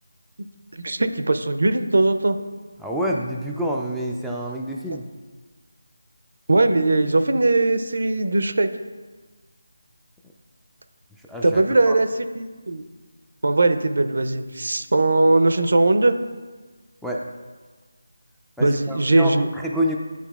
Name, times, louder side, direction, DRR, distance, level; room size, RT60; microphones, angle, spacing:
voice 1, 0.7-2.4 6.5-8.7 11.4-12.1 12.4-12.8 13.4-16.1 18.6-19.5, right 2 dB, 65° right, 9 dB, 0.4 m, -19 dB
voice 2, 2.8-5.1 11.3-12.0 17.0-17.2 18.6-20.0, equal, ahead, -3 dB, 0.3 m, -27 dB
10.5 x 4.0 x 2.3 m, 1.4 s
figure-of-eight pair, 160°, 0 cm